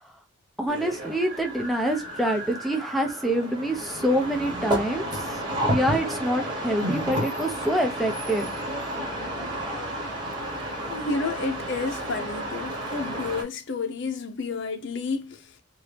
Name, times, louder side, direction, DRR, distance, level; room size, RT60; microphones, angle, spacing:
voice 1, 0.6-8.5, right 1 dB, ahead, 0.6 m, -26 dB
sound 1, 0.7-13.4, right 1 dB, 20° right, 1.0 m, -31 dB
voice 2, 10.9-15.6, left 4 dB, 55° left, 0.6 m, -31 dB
2.9 x 2.7 x 3.2 m
head